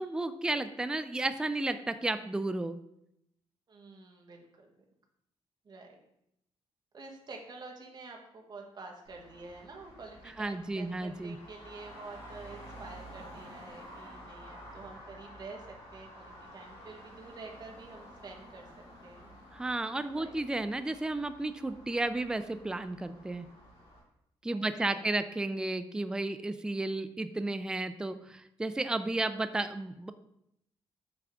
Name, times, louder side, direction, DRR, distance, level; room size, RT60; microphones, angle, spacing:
voice 1, 0.0-2.8 10.4-11.4 19.5-23.5 24.4-30.1, right 2 dB, 5° right, 11 dB, 0.3 m, -33 dB
voice 2, 3.7-4.8 5.6-5.9 6.9-19.3 20.1-20.4 24.5-25.1, right 3 dB, 45° right, 1 dB, 1.3 m, -48 dB
Traffic noise roadway noise, 9.0-24.0, equal, 75° left, 2.4 m, -51 dB
8.0 x 3.6 x 3.5 m, 0.78 s
cardioid pair, 110°, 10 cm